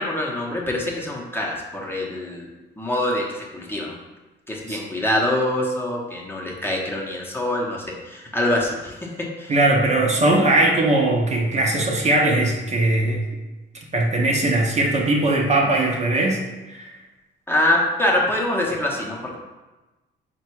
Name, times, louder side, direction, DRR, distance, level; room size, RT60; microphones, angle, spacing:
voice 1, 0.0-2.4 2.8-3.9 4.5-8.9 9.4-9.5 17.5-19.4, left 1 dB, 10° left, -3 dB, 0.8 m, -24 dB
voice 2, 9.5-13.2 13.9-16.4 16.7-16.9, right 2 dB, 35° right, -1 dB, 0.6 m, -20 dB
3.8 x 2.2 x 4.5 m, 1.1 s
cardioid pair, 90°, 20 cm